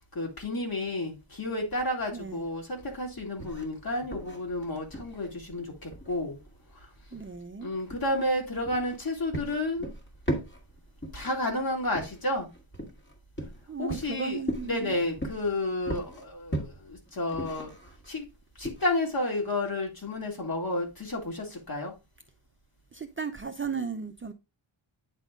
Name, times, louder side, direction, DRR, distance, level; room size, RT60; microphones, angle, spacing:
voice 1, 0.1-6.4 7.6-9.9 11.1-12.5 13.8-17.8 18.1-18.3 18.6-21.9, left 1 dB, 45° left, 2.3 m, -31 dB
sound 1, 1.8-18.8, right 1 dB, 25° left, 1.6 m, -39 dB
voice 2, 2.1-2.5 7.1-7.7 13.7-15.0 22.9-24.3, right 5 dB, 25° right, 0.5 m, -35 dB
9.0 x 3.9 x 3.7 m
wide cardioid pair, 130°, 47 cm